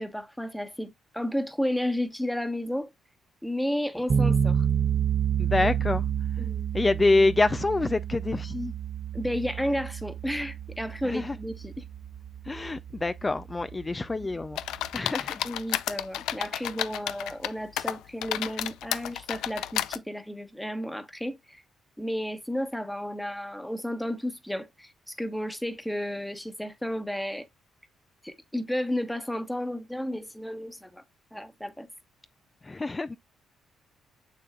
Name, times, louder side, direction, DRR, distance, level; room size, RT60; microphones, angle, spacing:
voice 1, 0.0-2.9 3.4-4.6 5.6-5.7 6.4-6.6 9.1-11.8 14.2-14.3 15.4-21.6 22.0-27.5 28.2-31.0 31.3-31.9, equal, 5° left, 1.1 m, -32 dB
sound 1, 4.1-15.0, right 8 dB, 40° right, 0.5 m, -30 dB
voice 2, 5.4-6.0 6.7-8.7 11.1-11.3 12.5-14.6 14.9-15.4 32.7-33.2, left 2 dB, 20° left, 0.4 m, -26 dB
sound 2, 14.6-17.5 17.8-20.0, left 12 dB, 90° left, 0.4 m, -31 dB
7.1 x 6.6 x 2.3 m
cardioid pair, 90°, 0 cm